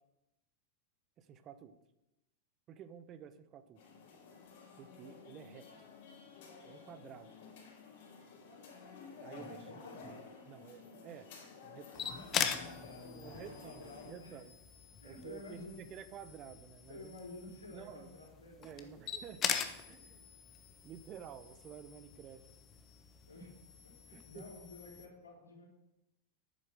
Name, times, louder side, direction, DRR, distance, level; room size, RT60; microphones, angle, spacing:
voice 1, 1.2-1.7 2.7-3.8 4.8-5.7 6.6-7.3 9.2-9.7 10.5-11.3 11.6-11.9 13.2-14.5 15.0-17.1 17.7-18.1 18.6-20.2 20.8-22.4 24.1-24.5, right 8 dB, 30° right, 12 dB, 1.0 m, -51 dB
sound 1, 3.7-14.1, left 5 dB, 55° left, 4.6 m, -53 dB
voice 2, 9.3-10.2 12.0-14.4 15.0-15.8 16.9-19.2 23.3-23.5 23.8-25.7, left 2 dB, 80° left, -2 dB, 4.4 m, -51 dB
sound 2, 11.9-25.1, left 8 dB, 30° left, 1.2 m, -42 dB
11.0 x 9.4 x 6.6 m, 0.92 s
figure-of-eight pair, 90°, 0 cm